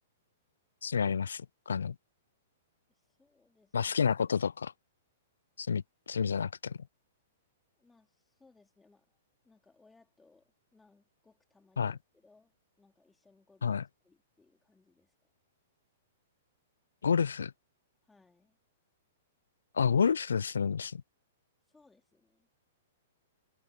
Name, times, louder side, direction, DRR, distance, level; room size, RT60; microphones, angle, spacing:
voice 1, 0.8-2.0 3.7-4.7 5.6-6.8 11.8-12.0 13.6-13.8 17.0-17.5 19.7-21.0, left 6 dB, 80° left, 0.3 m, -29 dB
voice 2, 3.1-4.2 7.8-9.2 9.4-15.1 18.0-18.6 21.7-22.5, left 3 dB, 10° left, 4.2 m, -66 dB
hypercardioid pair, 115°, 0 cm